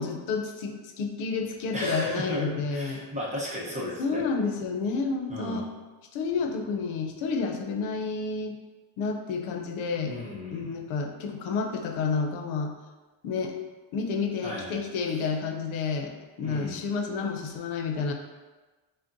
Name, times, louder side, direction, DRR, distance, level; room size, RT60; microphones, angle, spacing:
voice 1, 0.0-3.0 4.0-5.7 6.1-8.6 9.0-10.1 10.5-12.7 13.2-13.6 13.9-16.1 16.4-18.1, left 4 dB, 85° left, 3 dB, 0.6 m, -30 dB
voice 2, 1.7-4.2 5.3-5.6 10.1-10.7 14.4-14.8 16.4-16.8, left 1 dB, 15° right, -5 dB, 0.8 m, -34 dB
6.2 x 2.1 x 2.6 m, 1.2 s
cardioid pair, 130°, 47 cm